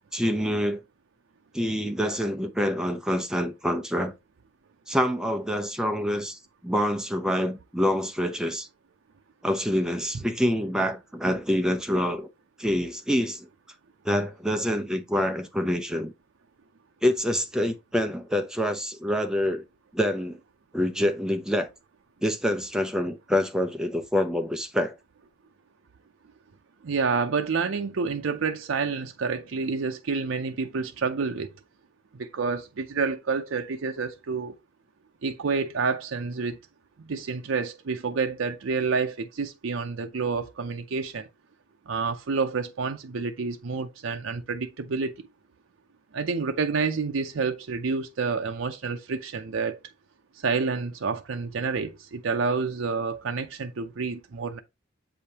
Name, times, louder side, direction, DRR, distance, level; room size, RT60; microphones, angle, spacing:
voice 1, 0.1-0.8 1.5-4.1 4.9-8.7 9.4-12.3 12.6-13.5 14.0-16.1 17.0-19.6 19.9-20.4 20.7-21.7 22.2-25.0, equal, 5° right, 0.6 m, -26 dB
voice 2, 26.8-31.6 32.1-34.5 35.2-36.6 37.0-41.3 41.9-45.1 46.1-49.8 50.4-54.6, right 4 dB, 75° right, 0.5 m, -29 dB
7.4 x 5.0 x 2.8 m
head